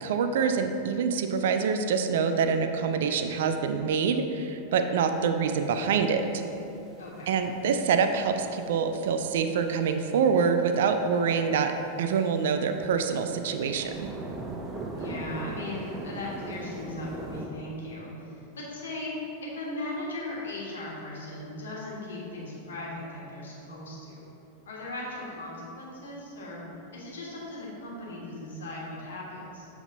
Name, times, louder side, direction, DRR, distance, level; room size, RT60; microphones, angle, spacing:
voice 1, 0.0-6.2 7.3-11.7 12.0-14.1, right 6 dB, 55° right, 7 dB, 0.4 m, -26 dB
sound 1, 5.6-17.5, right 2 dB, 20° right, 0.8 m, -41 dB
voice 2, 7.0-7.3 15.0-24.3 24.7-26.6 26.9-29.7, left 1 dB, 65° left, -4 dB, 1.3 m, -38 dB
7.0 x 3.5 x 3.9 m, 2.9 s
figure-of-eight pair, 90°, 0 cm